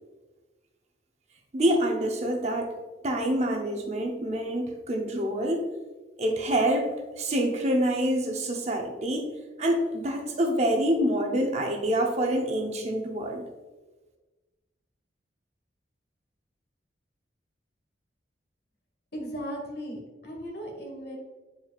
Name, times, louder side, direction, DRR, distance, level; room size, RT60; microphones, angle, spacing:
voice 1, 1.5-2.7 3.0-5.7 6.2-9.3 9.6-13.5, right 1 dB, 40° right, 2 dB, 0.7 m, -26 dB
voice 2, 19.1-21.2, equal, 60° left, 1 dB, 1.5 m, -37 dB
9.0 x 4.6 x 2.4 m, 1.2 s
head